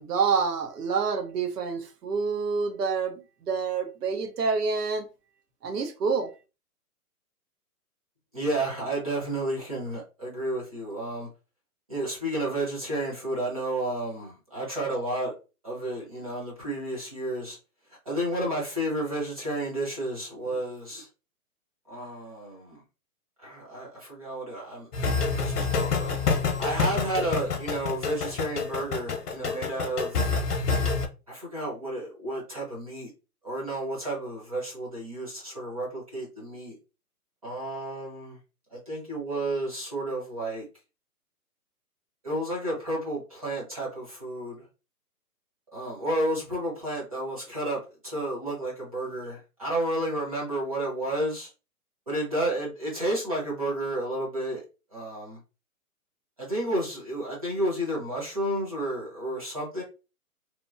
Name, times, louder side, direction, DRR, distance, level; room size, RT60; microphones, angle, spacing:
voice 1, 0.0-5.1 5.6-6.3, right 5 dB, 85° right, 0.8 m, -27 dB
voice 2, 8.3-11.3 11.9-15.3 15.6-17.6 18.1-21.1 21.9-22.8 23.4-24.9 25.2-26.1 26.6-30.4 31.3-33.1 33.4-36.8 37.4-38.4 38.7-40.6 42.2-44.6 45.7-51.5 52.1-54.6 54.9-55.4 56.4-59.8, right 1 dB, 25° right, 0.7 m, -31 dB
sound 1, 24.9-31.1, left 4 dB, 80° left, 0.7 m, -27 dB
2.9 x 2.0 x 2.4 m
hypercardioid pair, 175°, 46 cm